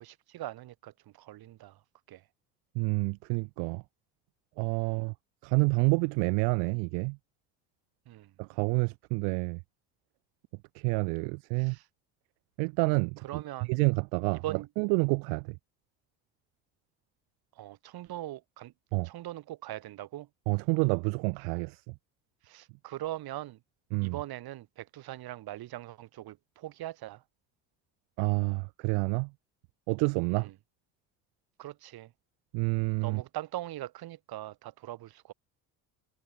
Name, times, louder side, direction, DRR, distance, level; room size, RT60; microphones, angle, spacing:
voice 1, 0.0-2.3 4.8-5.0 8.1-8.4 11.6-11.9 13.2-13.7 14.3-14.7 17.5-18.7 19.0-20.3 22.4-23.6 24.0-27.2 30.3-30.5 31.6-32.1 33.0-35.3, right 15 dB, 65° right, 7.4 m, -41 dB
voice 2, 2.7-3.8 4.6-5.1 5.4-7.2 8.4-9.6 10.7-11.8 12.6-13.4 13.7-14.4 14.8-15.6 18.9-19.1 20.5-21.9 23.9-24.2 28.2-29.3 29.9-30.5 32.5-33.2, right 38 dB, 80° right, 0.7 m, -28 dB
supercardioid pair, 85°, 40 cm